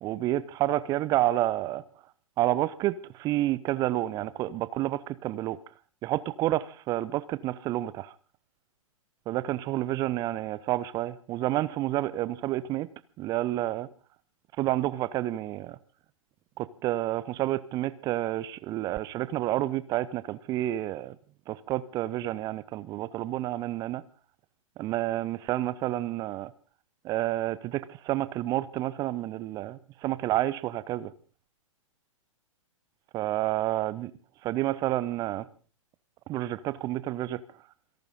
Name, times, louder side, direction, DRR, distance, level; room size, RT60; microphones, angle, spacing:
voice 1, 0.0-1.8 2.4-5.6 6.0-8.1 9.3-12.9 13.2-13.9 14.6-15.8 16.6-21.2 21.5-24.0 24.8-26.5 27.0-31.1 33.1-34.1 34.4-35.5 36.3-37.4, right 15 dB, 20° right, 17 dB, 0.7 m, -29 dB
28.0 x 12.0 x 3.9 m, 0.38 s
figure-of-eight pair, 110°, 18 cm